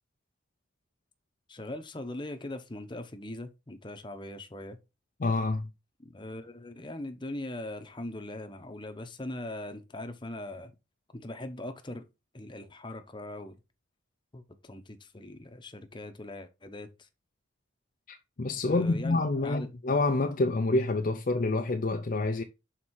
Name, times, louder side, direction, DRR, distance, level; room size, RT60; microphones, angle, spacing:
voice 1, 1.5-4.8 6.0-10.7 11.1-12.0 12.3-13.6 14.3-17.1 18.6-19.7, left 1 dB, 25° left, 0.9 m, -40 dB
voice 2, 5.2-5.7 18.1-22.4, left 2 dB, 45° left, 0.5 m, -27 dB
6.3 x 4.2 x 4.2 m
head